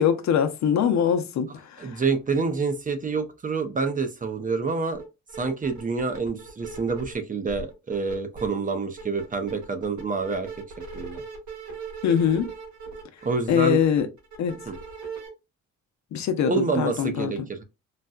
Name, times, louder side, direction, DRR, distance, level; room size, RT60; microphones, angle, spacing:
voice 1, 0.0-2.0 12.0-12.5 13.5-14.1 14.4-14.6 16.1-17.3, left 8 dB, 65° left, 0.7 m, -23 dB
voice 2, 1.8-5.0 5.3-10.5 10.9-11.2 13.2-13.8 14.7-14.8 16.4-17.6, right 4 dB, 25° right, 0.7 m, -27 dB
sound 1, 4.9-5.0 5.3-7.1 7.5-8.5 8.8-15.3, right 4 dB, 70° right, 2.0 m, -39 dB
4.0 x 2.2 x 2.4 m
cardioid pair, 90°, 30 cm